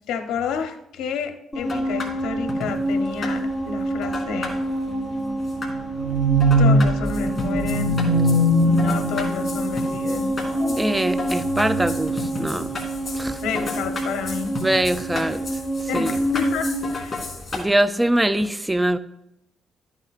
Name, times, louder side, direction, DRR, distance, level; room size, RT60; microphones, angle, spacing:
voice 1, 0.1-4.6 6.6-8.0 8.6-10.4 13.4-14.6 15.9-17.3, left 6 dB, 85° left, 6 dB, 0.8 m, -30 dB
sound 1, 1.5-16.9, right 1 dB, 10° left, 3.2 m, -27 dB
sound 2, 1.6-17.6, left 2 dB, 30° left, 3.0 m, -35 dB
sound 3, 4.8-9.9 10.5-11.0 11.4-12.0 12.5-12.7 13.1-13.2, right 1 dB, 65° right, 3.1 m, -21 dB
voice 2, 10.8-12.7 13.1-13.4 14.6-15.4 15.9-16.2 17.5-19.0, right 1 dB, 10° right, 12 dB, 0.4 m, -22 dB
13.5 x 8.9 x 2.4 m, 0.82 s
cardioid pair, 90°, 0 cm